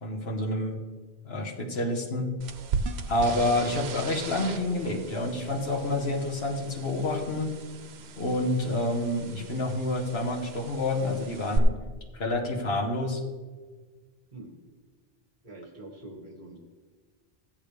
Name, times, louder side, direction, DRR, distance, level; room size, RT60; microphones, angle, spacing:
voice 1, 0.0-0.7 1.2-2.3 3.1-7.5 8.2-11.7 12.1-13.2, left 1 dB, 80° left, -1 dB, 1.6 m, -28 dB
sound 1, 2.4-11.6, right 5 dB, 85° right, 1.0 m, -38 dB
voice 2, 15.4-16.6, right 2 dB, 50° right, 0 dB, 1.9 m, -44 dB
14.0 x 8.8 x 3.4 m, 1.4 s
omnidirectional pair, 1.0 m